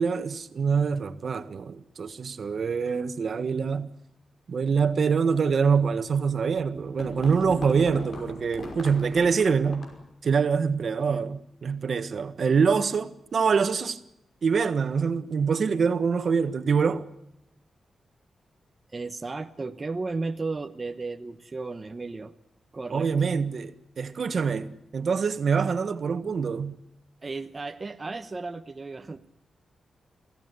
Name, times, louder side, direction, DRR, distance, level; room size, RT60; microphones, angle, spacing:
voice 1, 0.0-3.9 4.5-9.9 10.2-14.0 14.4-17.1 22.9-26.7, right 5 dB, 60° right, 1.4 m, -25 dB
sound 1, 6.6-10.1, left 2 dB, 65° left, 5.7 m, -40 dB
voice 2, 18.9-22.3 22.7-23.3 27.2-29.3, right 3 dB, 30° right, 1.0 m, -34 dB
23.5 x 16.5 x 9.5 m
cardioid pair, 90°, 0 cm